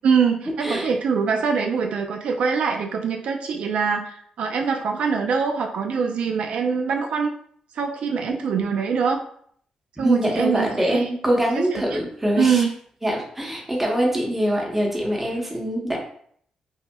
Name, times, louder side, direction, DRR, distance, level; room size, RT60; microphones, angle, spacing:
voice 1, 0.0-7.3 7.7-9.2 10.0-11.1 11.5-12.0 12.4-12.7, right 6 dB, 70° right, 3 dB, 0.3 m, -23 dB
voice 2, 10.0-12.7 13.0-16.0, right 1 dB, 10° right, -2 dB, 0.8 m, -23 dB
5.3 x 2.0 x 2.2 m, 0.63 s
wide cardioid pair, 145°, 2 cm